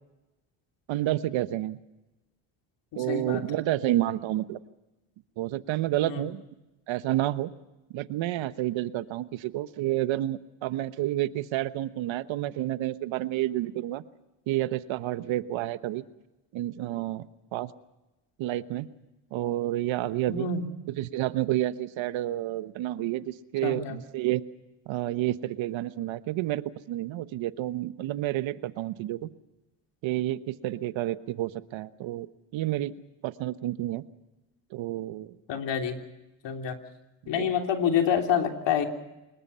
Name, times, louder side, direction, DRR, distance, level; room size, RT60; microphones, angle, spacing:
voice 1, 0.9-1.8 2.9-4.6 5.4-6.4 6.9-7.5 7.9-14.0 14.5-16.0 16.5-17.3 17.5-17.7 18.4-18.9 19.3-20.5 21.0-24.4 24.9-26.6 26.9-29.3 30.0-32.3 32.5-32.9 33.2-34.0 34.7-35.3 37.2-37.5, right 14 dB, 65° right, 13 dB, 1.2 m, -29 dB
voice 2, 2.9-3.6 6.0-6.3 20.3-20.7 23.6-24.0 35.5-36.0 36.4-36.8 37.3-38.9, left 7 dB, 60° left, 4 dB, 3.4 m, -27 dB
25.5 x 21.5 x 5.6 m, 1.0 s
supercardioid pair, 90°, 49 cm